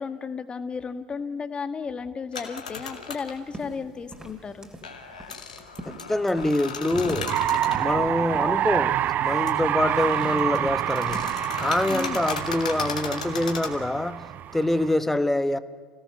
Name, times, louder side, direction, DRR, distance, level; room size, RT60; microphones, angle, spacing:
voice 1, 0.0-4.7 11.8-12.2, left 5 dB, 25° left, 9 dB, 1.5 m, -34 dB
sound 1, 2.3-3.4 4.8-7.8 9.5-9.6 9.9-13.7, left 5 dB, 80° left, 2.3 m, -36 dB
sound 2, 3.3-11.7, right 1 dB, 20° right, 3.8 m, -45 dB
voice 2, 5.8-7.3 7.8-11.3 11.6-15.6, left 1 dB, 5° left, 13 dB, 1.1 m, -25 dB
sound 3, 6.9-14.9, right 11 dB, 45° right, 0.6 m, -27 dB
29.0 x 17.5 x 6.6 m, 1.5 s
figure-of-eight pair, 70°, 4 cm